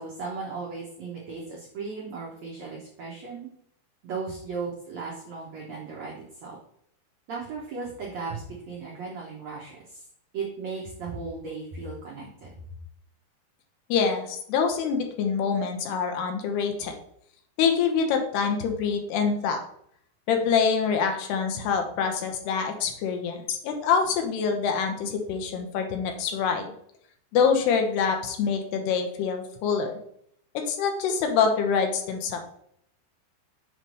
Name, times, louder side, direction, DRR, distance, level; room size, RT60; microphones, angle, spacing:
voice 1, 0.0-3.5 4.0-6.1 6.4-6.6 7.3-10.0 10.3-12.5, right 4 dB, 80° right, -3 dB, 1.5 m, -36 dB
voice 2, 13.9-16.9 17.6-19.6 20.3-26.7 27.3-29.9 30.7-32.4, left 6 dB, 80° left, 4 dB, 2.9 m, -25 dB
7.2 x 3.2 x 5.3 m, 0.70 s
omnidirectional pair, 4.7 m